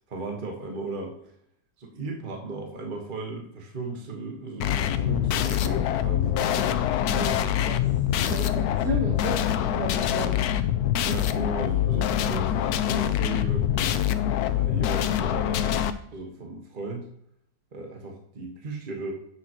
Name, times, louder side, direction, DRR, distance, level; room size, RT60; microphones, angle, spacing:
voice 1, 0.1-1.3 1.8-6.7 7.6-7.7 8.2-8.4 11.0-14.0 14.5-17.0 17.7-19.1, right 3 dB, 30° right, 2 dB, 1.4 m, -36 dB
sound 1, 4.6-15.9, left 11 dB, 70° left, 0.9 m, -25 dB
voice 2, 7.0-10.4, right 2 dB, 55° right, -1 dB, 2.0 m, -34 dB
10.5 x 7.9 x 3.0 m, 0.71 s
omnidirectional pair, 2.1 m